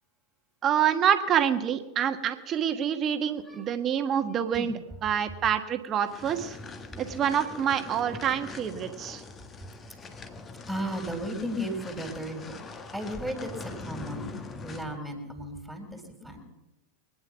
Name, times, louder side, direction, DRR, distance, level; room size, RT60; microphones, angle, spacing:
voice 1, 0.6-4.7 5.0-6.6 7.0-9.2, right 9 dB, 30° right, 8 dB, 1.3 m, -27 dB
sound 1, 6.1-15.0, left 3 dB, 20° left, 1.4 m, -42 dB
voice 2, 10.7-12.6 12.9-14.3 14.6-16.4, equal, ahead, 3 dB, 3.8 m, -35 dB
23.5 x 9.6 x 6.0 m, 0.99 s
figure-of-eight pair, 90°, 0 cm